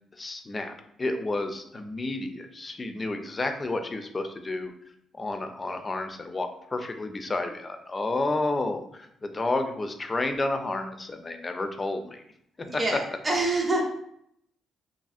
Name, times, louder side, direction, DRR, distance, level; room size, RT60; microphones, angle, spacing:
voice 1, 0.1-4.7 5.2-12.2 12.7-13.0, left 2 dB, 25° left, 6 dB, 0.3 m, -31 dB
voice 2, 12.7-13.8, right 2 dB, 25° right, -2 dB, 0.6 m, -26 dB
2.7 x 2.6 x 2.4 m, 0.72 s
cardioid pair, 90°, 0 cm